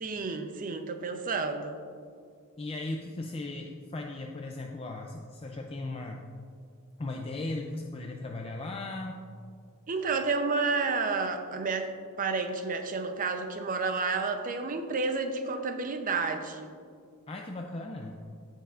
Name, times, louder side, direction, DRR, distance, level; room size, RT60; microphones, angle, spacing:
voice 1, 0.0-1.8 9.9-11.9 12.2-16.7, right 4 dB, 35° right, 6 dB, 0.6 m, -30 dB
voice 2, 2.6-6.3 7.0-9.2 17.3-18.2, left 2 dB, 25° left, 2 dB, 0.4 m, -37 dB
15.5 x 5.5 x 2.5 m, 2.2 s
head